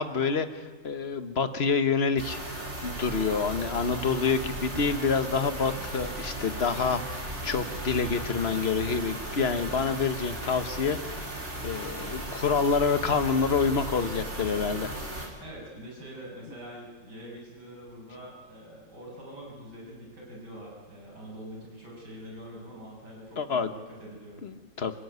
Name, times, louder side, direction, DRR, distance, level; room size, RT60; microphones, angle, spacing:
voice 1, 0.0-2.4 2.8-11.3 11.6-14.9 23.4-23.7 24.4-24.9, left 5 dB, 40° left, 10 dB, 1.3 m, -27 dB
sound 1, 2.2-15.3, right 1 dB, 35° right, 4.4 m, -36 dB
voice 2, 15.4-24.4, equal, 60° right, -2 dB, 7.4 m, -44 dB
26.5 x 15.0 x 9.5 m, 1.5 s
omnidirectional pair, 2.0 m